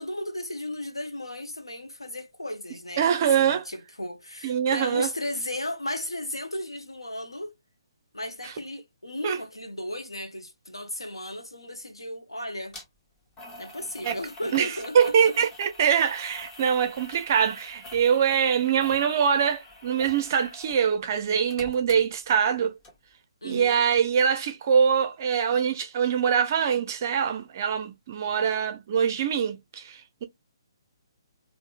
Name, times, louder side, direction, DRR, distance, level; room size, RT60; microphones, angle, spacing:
voice 1, 0.0-3.1 3.4-7.6 8.1-12.8 13.6-15.3 23.4-23.9, left 1 dB, 80° left, 0.7 m, -35 dB
voice 2, 3.0-3.6 4.4-5.1 8.4-8.5 9.2-9.4 14.0-14.2 14.5-22.8 23.4-30.3, right 7 dB, 40° right, 0.4 m, -24 dB
sound 1, 12.7-12.8 13.4-20.8 21.1-22.6 22.8-22.9, left 1 dB, 20° left, 0.8 m, -45 dB
3.5 x 2.4 x 2.3 m
figure-of-eight pair, 135°, 3 cm